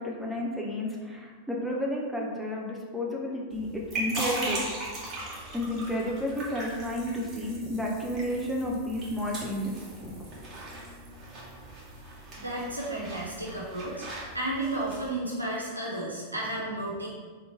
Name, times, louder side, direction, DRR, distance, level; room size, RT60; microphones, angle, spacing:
voice 1, 0.0-4.6 5.5-9.8 10.0-10.1, left 1 dB, ahead, -3 dB, 0.8 m, -31 dB
sound 1, 3.5-15.1, right 1 dB, 30° right, 1.3 m, -39 dB
voice 2, 12.4-14.1 14.3-17.1, right 1 dB, 85° right, -5 dB, 1.0 m, -32 dB
3.6 x 3.0 x 4.0 m, 1.4 s
figure-of-eight pair, 90°, 0 cm